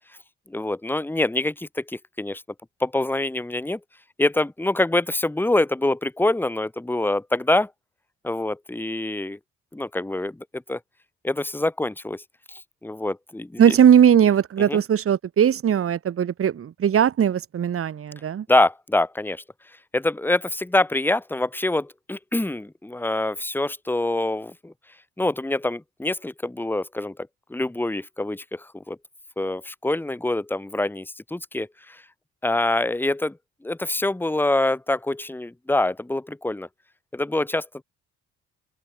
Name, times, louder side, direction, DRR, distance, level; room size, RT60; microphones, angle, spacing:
voice 1, 0.5-1.8 2.2-2.4 2.8-3.8 4.2-7.7 8.2-9.4 9.7-10.8 11.2-12.2 12.8-13.8 14.6-14.8 18.5-19.4 19.9-24.7 25.2-27.2 27.5-29.0 29.4-32.0 32.4-33.4 33.6-36.7 37.1-37.8, left 2 dB, 5° left, 1.5 m, -25 dB
voice 2, 13.6-18.4, right 9 dB, 45° right, 1.3 m, -19 dB
open air
cardioid pair, 90°, 30 cm